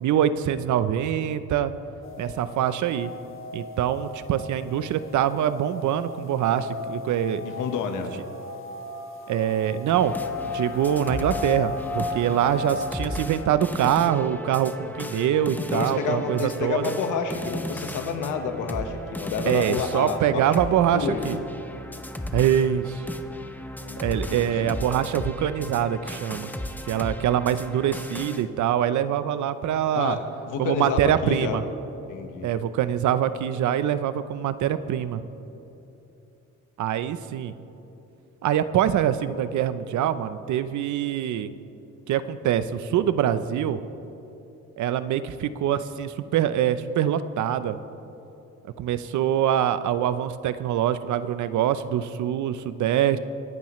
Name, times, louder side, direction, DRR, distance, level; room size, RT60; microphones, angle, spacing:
voice 1, 0.0-1.7 2.2-3.1 3.5-7.5 9.3-10.2 10.4-16.9 19.5-21.4 22.3-23.0 24.0-26.5 26.9-30.2 30.6-31.6 32.4-35.2 36.8-37.5 38.4-41.5 42.1-43.8 44.8-47.8 48.8-53.2, right 10 dB, 75° right, 13 dB, 0.7 m, -24 dB
sound 1, 2.0-12.9, left 3 dB, 45° left, 1.6 m, -35 dB
voice 2, 7.4-8.1 15.7-20.5 20.9-21.4 23.8-24.8 29.9-31.6 32.1-32.5, left 5 dB, 90° left, 6 dB, 1.4 m, -29 dB
Techno - Beat, 9.9-28.4, left 1 dB, 5° left, 0.8 m, -35 dB
24.5 x 11.5 x 3.2 m, 2.9 s
cardioid pair, 90°, 30 cm